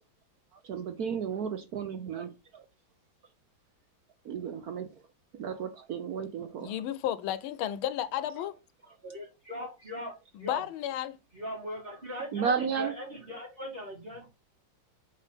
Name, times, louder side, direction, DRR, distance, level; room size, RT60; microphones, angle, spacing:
voice 1, 0.5-2.6 4.2-4.9 5.3-6.7 12.3-12.9, right 6 dB, 65° right, 1.0 m, -33 dB
voice 2, 6.6-8.6 10.3-11.2, left 11 dB, 90° left, 1.5 m, -33 dB
voice 3, 9.0-10.6 11.3-14.3, equal, 25° right, 3.7 m, -40 dB
5.6 x 5.4 x 3.5 m
omnidirectional pair, 2.2 m